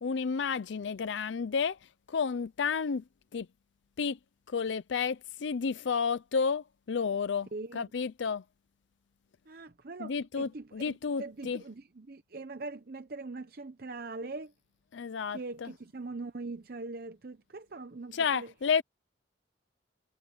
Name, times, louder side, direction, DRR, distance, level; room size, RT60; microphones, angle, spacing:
voice 1, 0.0-1.8 2.1-3.0 3.3-3.5 4.0-4.2 4.5-7.5 7.7-8.4 10.0-11.6 14.9-15.7 18.1-18.8, left 5 dB, 70° left, 0.5 m, -31 dB
voice 2, 7.5-7.9 9.5-14.5 15.3-18.5, right 3 dB, 50° right, 0.7 m, -42 dB
head